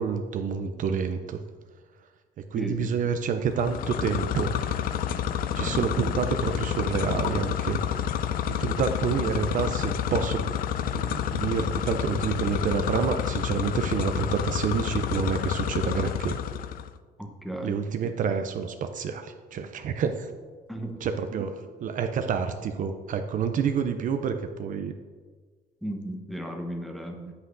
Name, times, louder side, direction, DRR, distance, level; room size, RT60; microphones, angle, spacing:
voice 1, 0.0-1.4 2.5-4.6 5.5-7.8 8.5-10.4 10.8-16.4 17.6-20.3 21.0-24.9 27.1-27.3, right 6 dB, 50° right, 7 dB, 0.5 m, -28 dB
voice 2, 2.5-2.9 5.5-6.2 17.2-17.8 20.7-20.9 25.8-27.2, equal, ahead, 2 dB, 0.9 m, -35 dB
sound 1, 3.5-16.9, left 9 dB, 60° left, 0.4 m, -29 dB
8.1 x 7.7 x 2.6 m, 1.5 s
cardioid pair, 110°, 17 cm